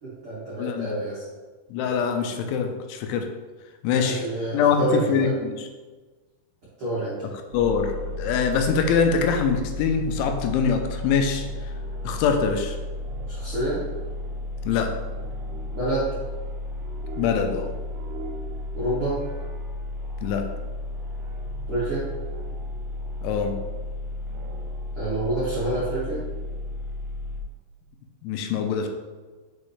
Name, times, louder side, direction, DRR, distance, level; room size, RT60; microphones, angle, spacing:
voice 1, 0.0-1.2 3.9-5.3 6.8-7.2 13.3-13.8 15.7-16.2 18.7-19.2 21.7-22.0 24.9-26.2, right 1 dB, 70° right, -10 dB, 1.3 m, -27 dB
voice 2, 0.6-1.0 1.7-3.3 3.8-4.2 4.5-5.6 7.5-11.4 12.0-12.8 14.7-14.9 17.2-17.7 20.2-20.5 23.2-23.6 28.2-28.9, left 6 dB, 80° left, 5 dB, 3.0 m, -23 dB
sound 1, 7.5-27.4, left 1 dB, 85° right, 2.2 m, -33 dB
7.1 x 5.3 x 3.2 m, 1.3 s
omnidirectional pair, 5.6 m